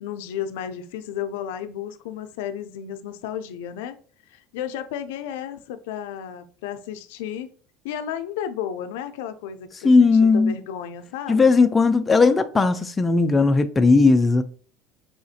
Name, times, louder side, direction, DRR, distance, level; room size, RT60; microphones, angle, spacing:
voice 1, 0.0-4.0 4.3-7.5 7.8-11.5, left 9 dB, 85° left, 0.4 m, -33 dB
voice 2, 9.8-10.5 11.3-14.4, left 4 dB, 15° left, 0.4 m, -17 dB
5.6 x 2.5 x 2.6 m
cardioid pair, 140°, 0 cm